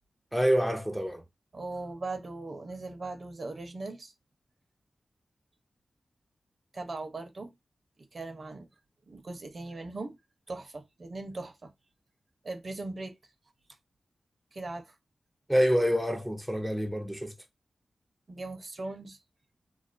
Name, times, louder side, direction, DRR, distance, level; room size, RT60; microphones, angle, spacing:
voice 1, 0.3-1.2 15.5-17.3, equal, 5° right, 0.4 m, -27 dB
voice 2, 1.5-4.1 6.7-7.5 8.1-8.7 9.1-10.2 10.5-11.7 12.4-13.2 14.5-14.9 18.3-19.2, right 2 dB, 55° right, 0.6 m, -39 dB
2.4 x 2.3 x 2.4 m
cardioid pair, 70°, 0 cm